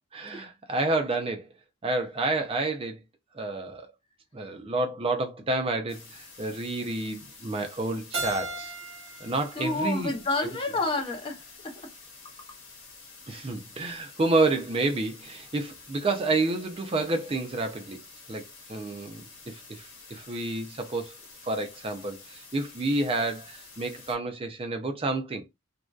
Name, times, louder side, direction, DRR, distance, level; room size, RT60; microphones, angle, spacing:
voice 1, 0.1-1.5 1.8-3.0 3.3-3.9 4.3-8.7 9.2-10.1 13.3-18.0 18.3-21.2 21.4-25.4, right 2 dB, 25° right, 0.4 m, -29 dB
sound 1, 5.9-24.2, left 4 dB, 75° left, 1.1 m, -49 dB
Keyboard (musical), 8.1-11.0, right 3 dB, 65° right, 1.1 m, -38 dB
voice 2, 9.6-11.9 13.3-13.5, left 2 dB, 25° left, 0.6 m, -30 dB
2.6 x 2.2 x 2.3 m
head